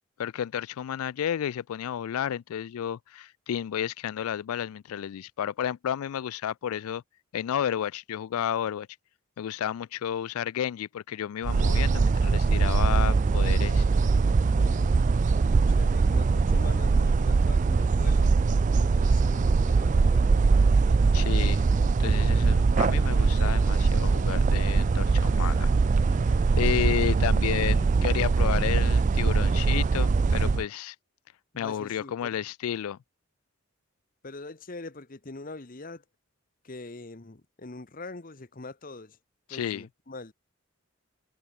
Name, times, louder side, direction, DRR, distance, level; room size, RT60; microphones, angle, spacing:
voice 1, 0.2-7.0 7.3-8.9 9.4-13.8 21.1-21.7 22.0-25.7 26.5-31.0 31.6-33.0 39.5-39.8, left 9 dB, 80° left, 0.3 m, -31 dB
sound 1, 11.4-30.6, right 4 dB, 35° right, 0.3 m, -22 dB
voice 2, 14.6-15.0 15.4-18.3 18.7-21.0 31.5-32.3 34.2-36.0 36.6-39.2 39.5-40.3, left 2 dB, 40° left, 1.0 m, -43 dB
Bowed string instrument, 22.2-27.4, right 3 dB, 80° right, 7.7 m, -53 dB
head